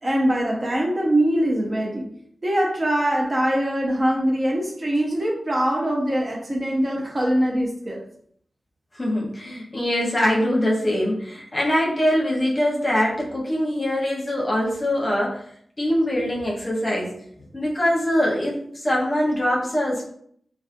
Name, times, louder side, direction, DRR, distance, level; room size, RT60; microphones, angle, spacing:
voice 1, 0.0-2.1 2.4-8.0, right 1 dB, 40° right, -1 dB, 0.6 m, -22 dB
voice 2, 8.9-15.4 15.8-17.2 17.5-20.0, left 1 dB, 35° left, -3 dB, 0.8 m, -23 dB
2.4 x 2.3 x 2.5 m, 0.65 s
wide cardioid pair, 65°, 0 cm